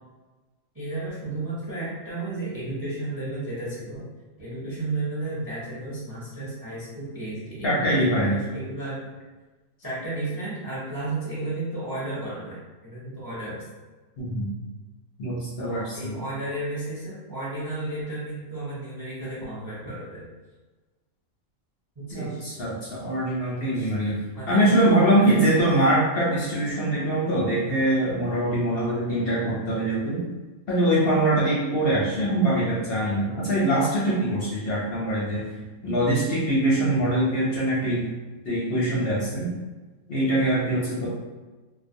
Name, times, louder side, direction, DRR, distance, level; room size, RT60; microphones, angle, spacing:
voice 1, 0.7-4.0 4.4-9.1 9.8-13.6 15.6-20.2 22.0-22.4 23.7-23.9 24.3-24.7 25.1-25.4, right 2 dB, 25° right, -9 dB, 0.5 m, -33 dB
voice 2, 7.6-8.4 14.2-14.5 15.2-16.2 22.1-24.1 24.5-30.2 30.7-35.4 35.8-38.0 38.5-39.5 40.1-41.1, right 1 dB, 60° left, -7 dB, 0.7 m, -23 dB
2.3 x 2.3 x 2.5 m, 1.2 s
omnidirectional pair, 1.4 m